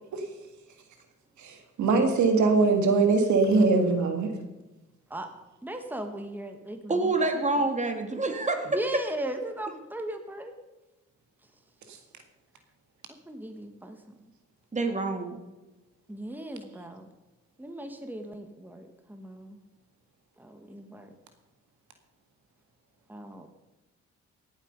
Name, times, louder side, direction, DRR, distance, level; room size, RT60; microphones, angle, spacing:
voice 1, 1.4-4.3, right 4 dB, 80° right, 6 dB, 1.9 m, -22 dB
voice 2, 5.6-7.7 8.6-10.5 13.3-14.0 16.1-17.1 17.6-19.6 20.4-21.1 23.1-23.5, right 1 dB, 5° right, 6 dB, 1.5 m, -38 dB
voice 3, 6.9-8.7 14.7-15.4, right 2 dB, 25° right, 5 dB, 2.1 m, -27 dB
17.0 x 8.0 x 5.3 m, 1.1 s
cardioid pair, 80°, 29 cm